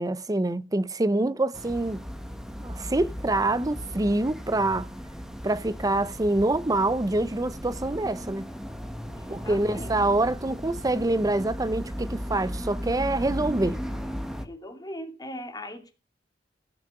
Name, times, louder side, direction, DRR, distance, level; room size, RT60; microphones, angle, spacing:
voice 1, 0.0-2.0 2.6-4.9 5.4-8.5 9.3-13.8, right 2 dB, 20° right, 0.6 m, -26 dB
sound 1, 1.5-14.5, equal, 5° right, 1.3 m, -36 dB
voice 2, 9.2-9.9 14.4-15.9, left 1 dB, 20° left, 2.6 m, -39 dB
16.5 x 6.5 x 6.8 m
head